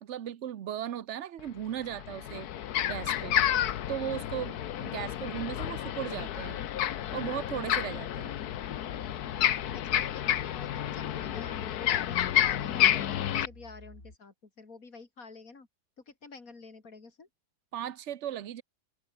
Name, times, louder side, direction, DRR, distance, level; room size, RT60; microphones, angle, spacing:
voice 1, 0.0-2.5 2.9-3.4 3.9-6.6 7.1-8.3 17.7-18.6, right 10 dB, 55° right, 1.0 m, -37 dB
sound 1, 1.4-1.5 1.9-13.5, left 11 dB, 80° left, 1.4 m, -30 dB
sound 2, 8.9-14.2, left 1 dB, 35° left, 6.1 m, -51 dB
voice 2, 9.7-15.7 16.1-17.3, left 4 dB, 60° left, 3.6 m, -49 dB
omnidirectional pair, 1.6 m